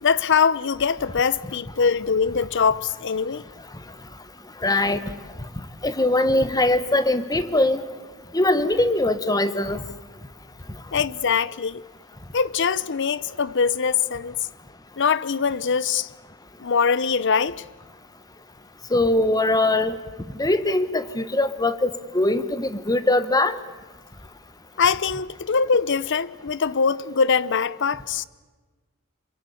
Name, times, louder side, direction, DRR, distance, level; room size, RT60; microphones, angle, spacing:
voice 1, 0.0-3.4 10.9-11.8 12.3-14.3 15.0-16.1 16.6-17.6 24.8-28.2, left 6 dB, 60° left, 0.7 m, -22 dB
voice 2, 4.6-5.1 5.8-7.8 8.3-9.8 18.9-20.0 20.4-23.5, left 2 dB, 20° left, 1.3 m, -21 dB
27.5 x 22.5 x 8.6 m
head